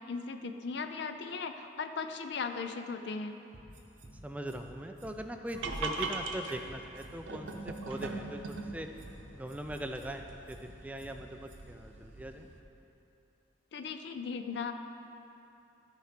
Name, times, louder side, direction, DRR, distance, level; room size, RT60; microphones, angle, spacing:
voice 1, 0.1-3.3 13.7-14.7, left 5 dB, 60° left, 8 dB, 0.5 m, -37 dB
sound 1, 3.5-4.1 4.5-4.6 5.0-5.1 5.5-6.1 6.5-6.6 7.0-7.1 7.5-8.1 8.5-8.6 9.0-9.1 9.5-10.1 10.5-10.6 11.0-11.1 11.5-11.6, right 1 dB, 40° right, 1.3 m, -52 dB
voice 2, 4.2-8.9 9.3-12.5, right 1 dB, 10° right, 5 dB, 0.3 m, -41 dB
sound 2, 5.6-12.6, right 3 dB, 80° right, 0.7 m, -41 dB
13.5 x 4.5 x 5.0 m, 3.0 s
head